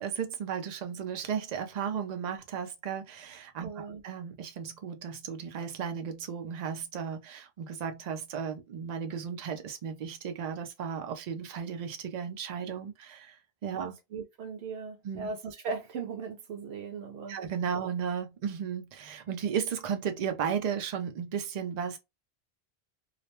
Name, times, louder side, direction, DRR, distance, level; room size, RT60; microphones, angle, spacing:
voice 1, 0.0-14.0 15.0-15.3 17.3-22.0, right 7 dB, 50° right, 0.5 m, -35 dB
voice 2, 3.6-4.0 13.8-17.4, right 5 dB, 85° right, 0.8 m, -38 dB
2.4 x 2.1 x 2.9 m
omnidirectional pair, 1.0 m